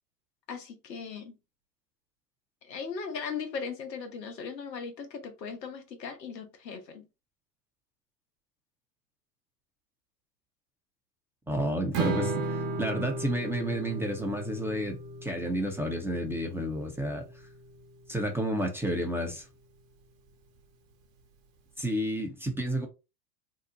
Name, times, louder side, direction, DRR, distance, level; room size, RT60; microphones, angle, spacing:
voice 1, 0.5-1.4 2.6-7.1, left 5 dB, 85° left, 1.0 m, -38 dB
voice 2, 11.5-17.3 18.1-19.5 21.8-22.9, right 1 dB, 5° right, 0.7 m, -31 dB
Strum, 11.9-18.2, right 3 dB, 40° right, 1.0 m, -36 dB
2.8 x 2.1 x 3.8 m
hypercardioid pair, 90°, 49 cm